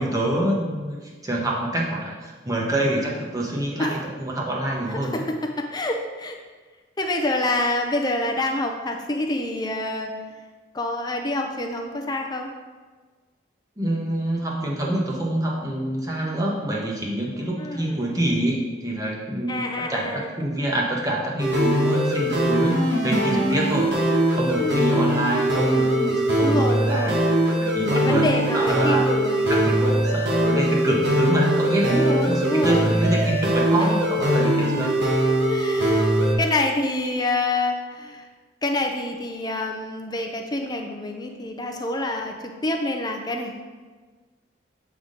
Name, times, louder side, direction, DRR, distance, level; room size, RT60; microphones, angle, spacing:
voice 1, 0.0-5.2 13.8-23.9 24.3-27.2 27.6-29.0 29.5-32.0 32.3-34.9, right 1 dB, 20° right, -3 dB, 1.0 m, -26 dB
voice 2, 4.9-6.4 7.0-10.1 10.7-12.5 17.6-18.0 19.5-20.3 24.6-25.0 26.4-27.2 27.9-29.8 31.9-32.9 33.8-33.9 35.5-36.1 36.4-38.2 38.6-43.7, left 2 dB, 20° left, 3 dB, 0.5 m, -27 dB
sound 1, 21.4-36.3, right 1 dB, 60° right, 1.1 m, -21 dB
7.8 x 3.6 x 3.8 m, 1.4 s
head